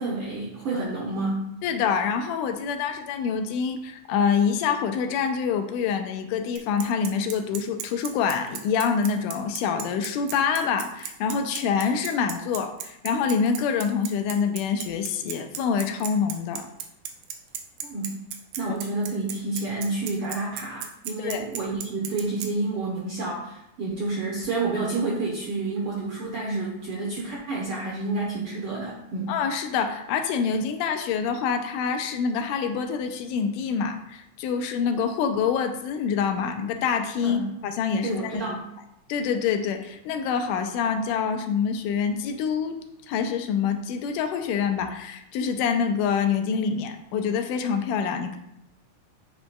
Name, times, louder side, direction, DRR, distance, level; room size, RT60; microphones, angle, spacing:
voice 1, 0.0-1.4 17.8-18.2 18.6-29.3 37.2-37.5 38.0-38.6, right 3 dB, 70° right, -4 dB, 1.3 m, -29 dB
voice 2, 1.6-16.7 18.7-18.8 21.2-21.4 29.3-38.6 39.1-42.8 43.1-48.4, left 6 dB, 85° left, 6 dB, 2.1 m, -26 dB
Bicycle, 6.6-22.5, right 8 dB, 90° right, 2.2 m, -35 dB
8.2 x 5.2 x 2.3 m, 0.81 s
omnidirectional pair, 3.7 m